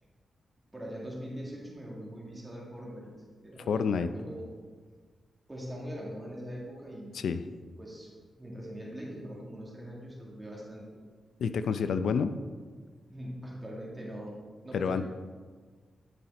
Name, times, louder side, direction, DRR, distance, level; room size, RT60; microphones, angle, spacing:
voice 1, 0.7-3.1 3.4-4.5 5.5-7.2 7.8-8.1 8.4-10.9 13.1-14.3 14.6-15.1, equal, 15° right, -4 dB, 1.8 m, -42 dB
voice 2, 3.7-4.1 7.1-7.5 11.4-12.4 14.7-15.0, left 6 dB, 80° left, 10 dB, 0.4 m, -28 dB
9.7 x 5.8 x 4.2 m, 1.5 s
wide cardioid pair, 140°, 0 cm